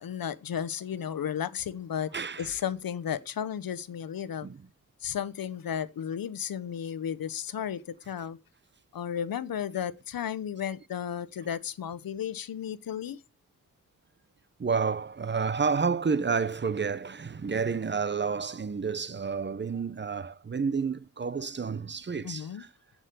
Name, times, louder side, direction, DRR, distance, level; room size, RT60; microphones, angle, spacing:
voice 1, 0.0-2.1 2.4-4.5 5.0-8.4 8.9-13.2 22.2-22.6, left 9 dB, 85° left, 1.0 m, -34 dB
voice 2, 2.1-2.5 4.4-4.6 14.6-22.7, right 5 dB, 30° right, 0.8 m, -30 dB
15.5 x 6.3 x 6.8 m
wide cardioid pair, 125°, 34 cm